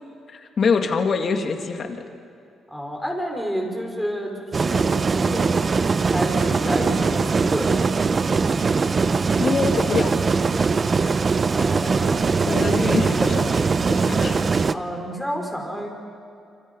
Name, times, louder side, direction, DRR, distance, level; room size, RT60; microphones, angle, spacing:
voice 1, 0.3-2.0 9.4-10.2 11.0-11.1 12.5-13.6 13.9-14.4, left 5 dB, 50° left, 5 dB, 2.2 m, -24 dB
voice 2, 2.7-5.6 5.9-7.9 11.5-13.3 14.0-14.3 14.7-15.9, equal, ahead, 1 dB, 5.0 m, -30 dB
sound 1, 4.5-14.7, right 4 dB, 40° right, 0.7 m, -21 dB
26.5 x 26.0 x 5.5 m, 2.5 s
cardioid pair, 85°, 0 cm